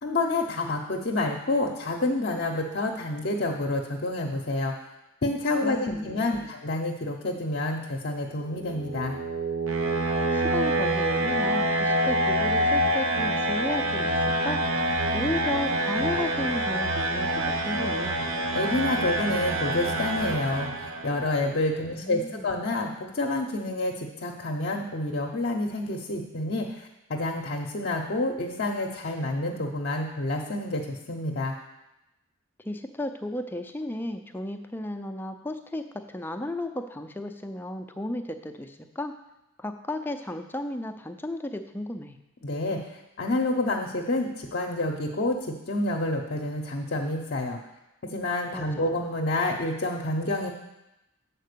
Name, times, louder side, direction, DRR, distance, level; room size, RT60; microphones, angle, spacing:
voice 1, 0.0-4.7 5.2-9.2 18.5-31.5 42.4-47.6 48.0-50.5, left 2 dB, 50° left, 1 dB, 0.6 m, -28 dB
voice 2, 5.6-6.5 10.3-14.6 15.1-18.2 21.8-22.6 32.6-39.1 39.6-42.2 48.5-48.9, left 1 dB, 10° left, 6 dB, 0.4 m, -34 dB
sound 1, 8.4-21.3, right 1 dB, 75° right, 0.7 m, -26 dB
7.5 x 4.5 x 6.7 m, 0.94 s
head